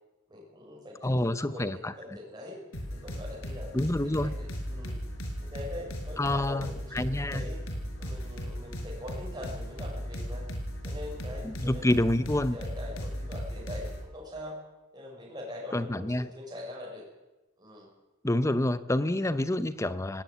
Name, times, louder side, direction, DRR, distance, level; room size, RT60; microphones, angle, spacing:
voice 1, 0.3-2.6 3.0-4.9 5.4-7.6 8.0-10.4 10.8-11.9 12.5-14.5 14.9-17.0 17.6-17.9 19.2-19.3, left 1 dB, 20° right, -3 dB, 6.1 m, -43 dB
voice 2, 1.0-1.9 3.7-4.3 6.2-7.4 11.4-12.6 15.7-16.3 18.2-20.2, left 1 dB, 15° left, 14 dB, 0.6 m, -28 dB
sound 1, 2.7-14.0, equal, 70° left, 5.3 m, -37 dB
18.5 x 16.5 x 9.7 m, 1.1 s
head